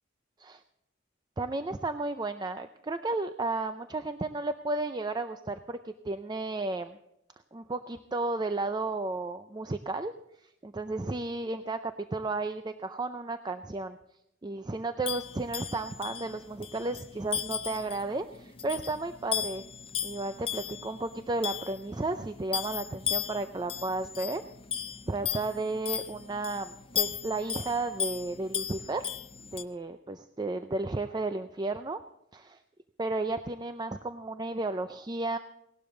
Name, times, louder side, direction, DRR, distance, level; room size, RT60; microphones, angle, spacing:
voice 1, 1.4-7.0 7.5-10.1 10.4-14.0 14.4-19.6 20.0-24.4 25.1-29.1 29.5-32.0 32.3-32.6 33.0-35.4, right 2 dB, 20° right, 9 dB, 0.4 m, -33 dB
sound 1, 15.0-29.6, left 9 dB, 30° left, 0.6 m, -36 dB
18.0 x 12.0 x 3.8 m, 0.84 s
head